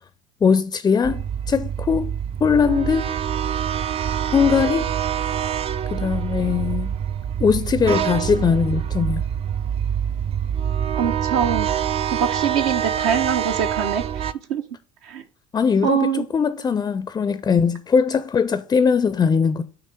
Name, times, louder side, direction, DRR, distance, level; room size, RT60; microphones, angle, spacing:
voice 1, 0.4-2.1 2.4-3.0 4.3-4.9 5.9-6.9 7.4-9.2 15.5-19.6, left 6 dB, 20° left, 0.5 m, -20 dB
sound 1, 1.0-14.3, right 9 dB, 35° right, 0.4 m, -25 dB
voice 2, 11.0-11.7 12.1-14.6 15.0-15.2 15.8-16.2, right 7 dB, 65° right, 0.7 m, -23 dB
8.7 x 3.1 x 5.8 m
hypercardioid pair, 70°, 17 cm